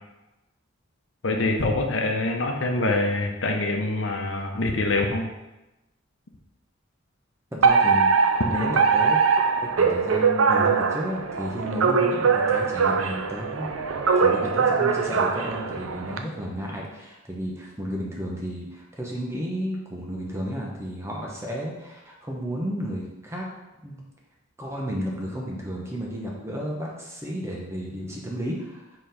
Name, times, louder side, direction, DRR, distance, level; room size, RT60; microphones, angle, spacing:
voice 1, 1.2-5.3, left 2 dB, 65° left, 2 dB, 0.9 m, -25 dB
voice 2, 7.5-9.5 9.8-13.7 14.1-23.5 23.8-24.0 24.6-28.8, equal, 15° right, -3 dB, 0.9 m, -32 dB
Alarm, 7.6-16.2, right 5 dB, 90° right, 0.6 m, -22 dB
5.0 x 3.9 x 5.1 m, 1.0 s
head